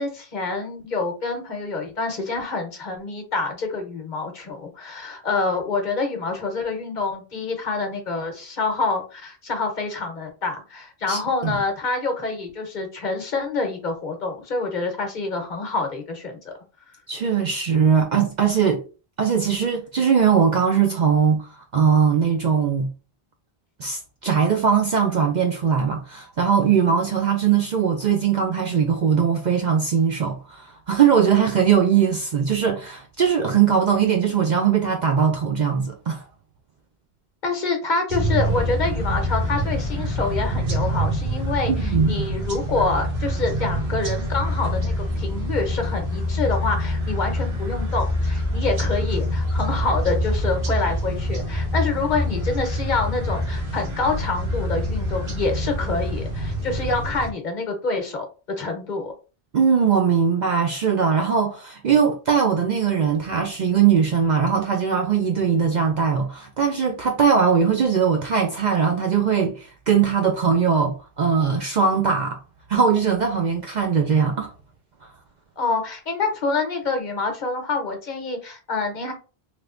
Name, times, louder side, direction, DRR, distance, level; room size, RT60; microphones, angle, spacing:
voice 1, 0.0-16.5 37.4-58.3 58.6-59.1 75.6-79.1, left 3 dB, 50° left, 1.0 m, -27 dB
voice 2, 11.1-11.6 17.1-18.8 19.2-22.9 23.8-36.3 41.7-42.3 59.5-72.4 72.7-74.5, right 7 dB, 55° right, 0.5 m, -20 dB
sound 1, 38.1-57.3, equal, 75° right, 1.3 m, -25 dB
3.2 x 3.0 x 2.4 m
omnidirectional pair, 1.0 m